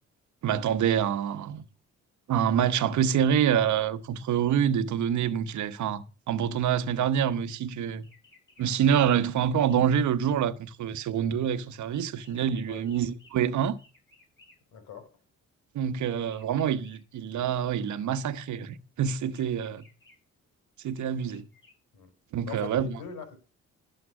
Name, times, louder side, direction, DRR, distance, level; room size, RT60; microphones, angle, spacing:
voice 1, 0.4-1.6 2.3-8.0 8.6-13.7 15.7-19.9 20.8-21.4 22.3-22.9, right 8 dB, 70° right, 1.1 m, -26 dB
sound 1, 8.0-8.6 8.9-10.3 10.7-14.6 16.0-17.0 17.9-18.3 19.3-20.2 20.9-21.7, left 2 dB, 40° left, 7.6 m, -60 dB
voice 2, 14.7-15.2 21.9-22.1 22.4-23.4, left 6 dB, 80° left, 4.8 m, -41 dB
12.5 x 7.7 x 6.2 m
cardioid pair, 90°, 30 cm